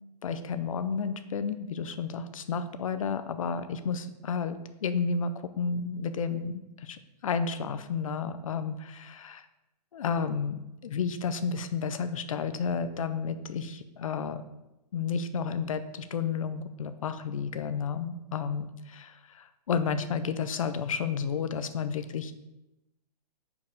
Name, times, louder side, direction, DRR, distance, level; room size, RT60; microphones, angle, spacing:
voice 1, 0.2-9.4 9.9-14.4 14.9-22.3, left 6 dB, 55° left, 11 dB, 0.6 m, -32 dB
5.2 x 4.7 x 5.2 m, 0.96 s
hypercardioid pair, 175°, 21 cm